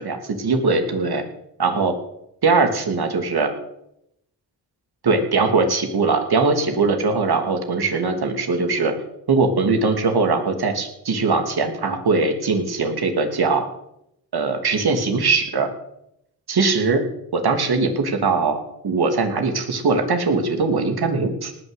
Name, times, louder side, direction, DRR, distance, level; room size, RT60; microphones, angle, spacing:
voice 1, 0.0-1.2 1.6-1.9 2.4-3.5 5.0-8.9 9.3-13.7 14.3-15.7 16.5-17.0 17.3-21.5, right 4 dB, 60° right, 5 dB, 3.0 m, -21 dB
18.5 x 6.2 x 8.4 m, 0.80 s
cardioid pair, 55°, 42 cm